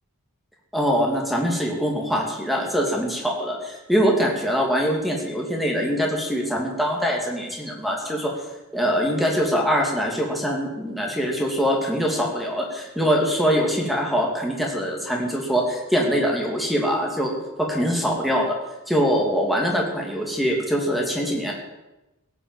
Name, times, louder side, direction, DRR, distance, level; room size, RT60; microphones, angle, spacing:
voice 1, 0.7-8.3 8.7-18.6 18.9-21.5, equal, ahead, -1 dB, 2.5 m, -23 dB
17.0 x 7.0 x 7.4 m, 0.99 s
head